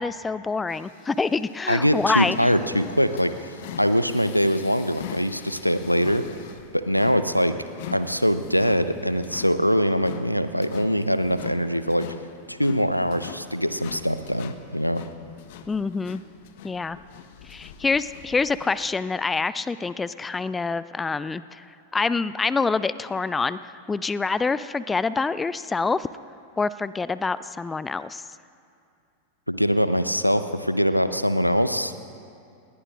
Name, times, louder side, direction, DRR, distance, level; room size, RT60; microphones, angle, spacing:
voice 1, 0.0-2.5 15.7-16.2 16.6-17.0 17.4-21.6 21.9-26.1 26.6-28.2, left 4 dB, 15° left, 16 dB, 0.4 m, -26 dB
sound 1, 0.7-18.9, left 8 dB, 50° left, 0.9 m, -43 dB
voice 2, 1.7-6.2 6.7-7.6 7.9-12.1 12.5-15.0 29.5-31.9, equal, 90° left, 11 dB, 0.7 m, -23 dB
29.5 x 20.0 x 2.5 m, 2.4 s
figure-of-eight pair, 90°, 0 cm